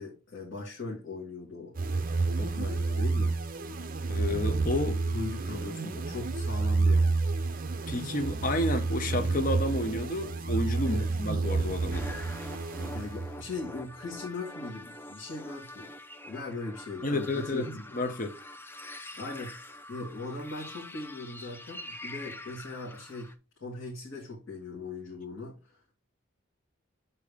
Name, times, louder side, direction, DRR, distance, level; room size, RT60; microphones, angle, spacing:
voice 1, 0.0-1.8 2.4-3.4 4.8-7.3 10.8-11.2 12.9-15.9 16.2-17.8 19.1-23.3 23.6-25.8, left 3 dB, 60° left, 2.1 m, -39 dB
sound 1, 1.8-13.5, right 3 dB, 40° right, 0.7 m, -29 dB
voice 2, 4.1-5.0 7.9-12.1 17.0-17.7 17.9-18.3, left 1 dB, 40° left, 0.8 m, -30 dB
sound 2, 11.9-23.3, left 1 dB, 10° left, 0.5 m, -45 dB
6.7 x 4.2 x 5.0 m
head